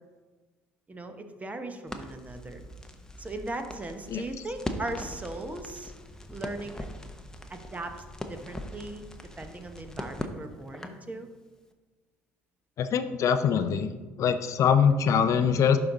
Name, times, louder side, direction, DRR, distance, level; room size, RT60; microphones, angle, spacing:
voice 1, 0.9-2.6 3.2-5.9 6.3-6.9 7.5-9.0 9.4-11.3, right 2 dB, 20° right, 7 dB, 1.0 m, -38 dB
Crackle, 1.9-11.1, left 1 dB, 10° left, 0.8 m, -41 dB
voice 2, 12.8-13.9 14.2-15.8, left 7 dB, 50° left, 10 dB, 0.5 m, -23 dB
11.5 x 4.0 x 3.8 m, 1.3 s
hypercardioid pair, 65°, 7 cm